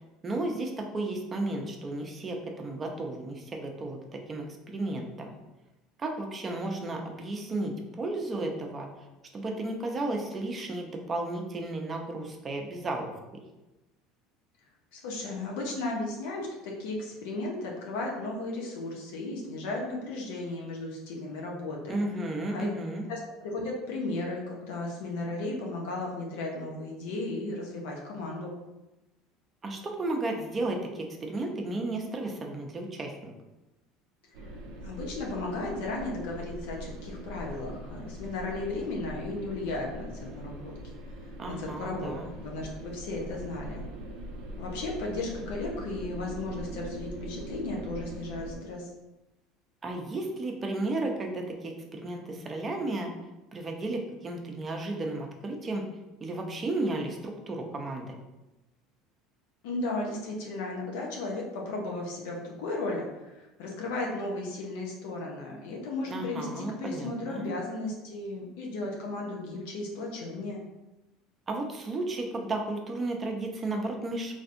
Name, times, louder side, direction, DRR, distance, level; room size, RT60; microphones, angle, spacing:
voice 1, 0.2-5.4 6.0-8.9 9.3-13.1 21.9-23.0 29.6-33.3 41.4-42.3 49.8-53.1 53.5-55.8 56.2-58.2 66.1-67.5 71.5-74.3, right 2 dB, 30° right, 2 dB, 0.5 m, -33 dB
voice 2, 14.9-21.9 22.5-22.7 23.1-28.5 34.4-34.5 34.8-40.7 41.5-43.8 44.6-48.9 59.6-70.6, left 2 dB, 80° left, -1 dB, 0.5 m, -35 dB
sound 1, 34.3-48.6, right 1 dB, 75° right, 0.5 m, -41 dB
3.3 x 2.6 x 2.5 m, 1.0 s
supercardioid pair, 100°, 0 cm